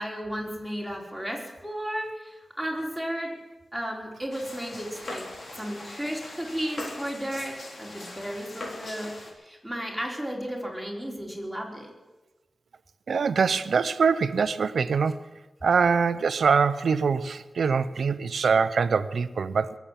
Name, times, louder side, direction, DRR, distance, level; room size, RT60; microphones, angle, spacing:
voice 1, 0.0-3.3 3.7-5.2 5.6-9.1 9.4-11.9, equal, ahead, -2 dB, 4.5 m, -34 dB
sound 1, 4.3-9.3, left 2 dB, 65° left, 3.6 m, -40 dB
voice 2, 13.1-15.2 15.6-19.8, right 5 dB, 85° right, 14 dB, 0.6 m, -23 dB
22.0 x 8.4 x 7.4 m, 1.1 s
cardioid pair, 50°, 0 cm